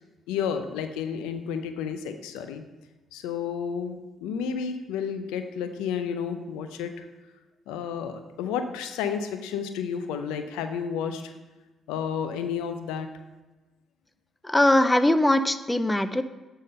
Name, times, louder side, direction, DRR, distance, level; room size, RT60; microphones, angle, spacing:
voice 1, 0.3-2.6 3.1-6.9 7.7-11.3 11.9-13.1, left 7 dB, 90° left, 8 dB, 0.6 m, -31 dB
voice 2, 14.4-16.2, left 1 dB, 15° left, 11 dB, 0.5 m, -21 dB
9.5 x 3.8 x 5.3 m, 1.2 s
supercardioid pair, 60°, 0 cm